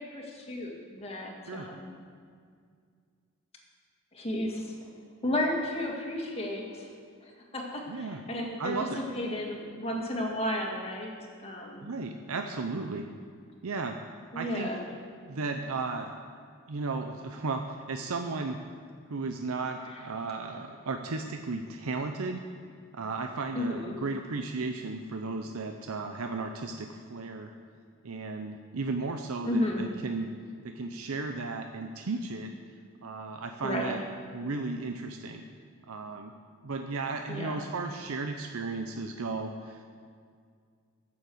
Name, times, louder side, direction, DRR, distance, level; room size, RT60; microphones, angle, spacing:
voice 1, 0.0-1.9 4.1-4.7 5.2-6.9 7.2-11.1 11.4-11.9 14.3-14.8 23.5-24.0 29.5-29.9 33.6-33.9 37.3-37.7, left 1 dB, 25° left, -1 dB, 2.0 m, -33 dB
voice 2, 7.9-8.2 8.6-9.0 11.8-13.1 13.6-14.0 14.3-14.7 15.3-16.2 16.7-18.6 19.1-22.4 22.9-27.5 28.0-30.3 30.6-32.5 33.0-34.0 34.3-35.4 35.9-36.3 36.6-39.9, right 3 dB, 80° right, 5 dB, 0.7 m, -34 dB
13.0 x 7.1 x 7.8 m, 2.1 s
head